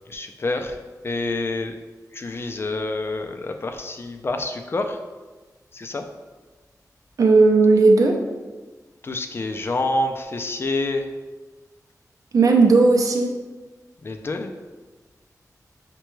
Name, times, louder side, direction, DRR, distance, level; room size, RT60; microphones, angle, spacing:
voice 1, 0.1-0.8 1.0-1.8 2.1-5.0 5.7-6.1 9.0-11.1 14.0-14.5, left 2 dB, 40° left, 5 dB, 0.4 m, -27 dB
voice 2, 7.2-8.2 12.3-13.4, right 3 dB, 60° right, 2 dB, 0.5 m, -15 dB
6.6 x 2.2 x 3.1 m, 1.2 s
wide cardioid pair, 130°, 6 cm